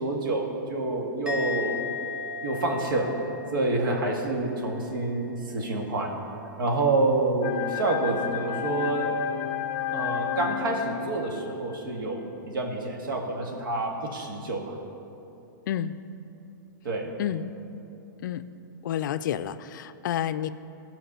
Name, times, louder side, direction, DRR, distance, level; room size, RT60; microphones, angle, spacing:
voice 1, 0.0-1.8 2.4-3.1 3.5-6.1 6.6-9.2 9.9-14.8 16.8-17.1, right 2 dB, 80° right, 1 dB, 1.9 m, -28 dB
Musical instrument, 1.3-4.7 4.9-5.3, left 5 dB, 10° right, 1.0 m, -36 dB
sound 1, 7.4-11.9, left 10 dB, 30° left, 0.7 m, -32 dB
voice 2, 17.2-17.5 18.2-18.4 18.8-20.5, left 10 dB, 65° left, 13 dB, 0.4 m, -29 dB
16.0 x 5.8 x 5.6 m, 2.8 s
hypercardioid pair, 155°, 11 cm